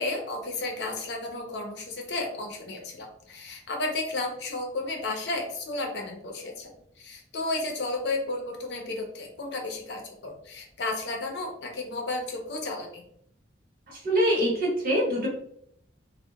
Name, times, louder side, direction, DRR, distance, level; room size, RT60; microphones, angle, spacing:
voice 1, 0.0-13.0, left 2 dB, 65° left, 2 dB, 0.6 m, -33 dB
voice 2, 13.9-15.3, equal, 50° right, -1 dB, 0.8 m, -24 dB
2.8 x 2.1 x 2.2 m, 0.68 s
head